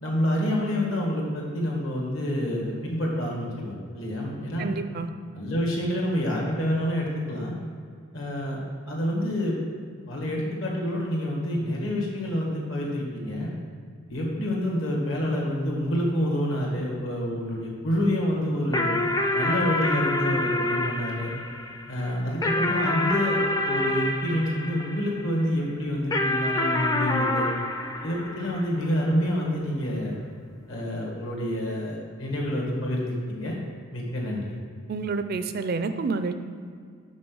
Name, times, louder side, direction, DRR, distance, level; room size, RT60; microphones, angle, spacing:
voice 1, 0.0-4.7 5.3-7.5 8.1-8.6 8.9-9.5 10.1-13.5 14.1-18.9 19.3-21.3 21.9-23.4 23.6-27.5 28.0-30.1 30.7-33.6 33.9-34.5, equal, 65° left, -2 dB, 2.0 m, -27 dB
voice 2, 4.6-5.1 34.9-36.3, right 4 dB, 45° right, 9 dB, 0.4 m, -28 dB
sound 1, 18.7-25.4 26.1-28.9, left 1 dB, 15° left, 0.4 m, -27 dB
6.2 x 5.7 x 6.2 m, 2.2 s
head